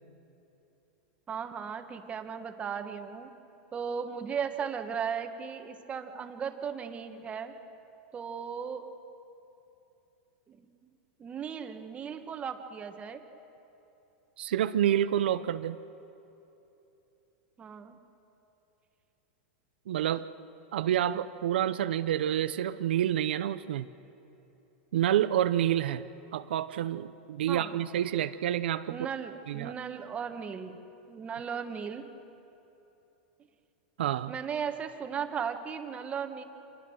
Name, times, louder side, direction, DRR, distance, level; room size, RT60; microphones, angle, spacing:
voice 1, 1.3-3.3 3.7-7.5 8.1-8.9 10.5-10.9 11.2-13.2 17.6-18.0 27.5-27.8 28.9-30.8 31.1-32.1 34.3-36.4, right 7 dB, 25° right, 6 dB, 1.5 m, -36 dB
voice 2, 14.4-15.8 19.9-20.3 20.7-23.9 24.9-26.0 26.3-29.0 29.5-29.7 34.0-34.3, right 11 dB, 85° right, 11 dB, 0.6 m, -28 dB
26.5 x 21.0 x 6.5 m, 3.0 s
supercardioid pair, 130°, 5 cm